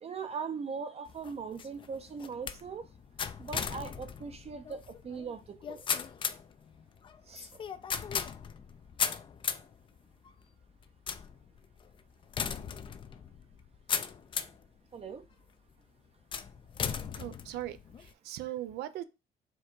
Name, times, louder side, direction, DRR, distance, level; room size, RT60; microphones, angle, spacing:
voice 1, 0.0-2.8 3.4-5.8 7.3-7.5 14.9-15.2, right 5 dB, 35° right, 0.6 m, -40 dB
sound 1, 1.1-14.7 15.2-15.7 16.3-18.1, left 7 dB, 30° left, 0.4 m, -37 dB
voice 2, 17.2-19.0, right 13 dB, 80° right, 0.5 m, -39 dB
4.5 x 2.3 x 4.5 m
cardioid pair, 110°, 17 cm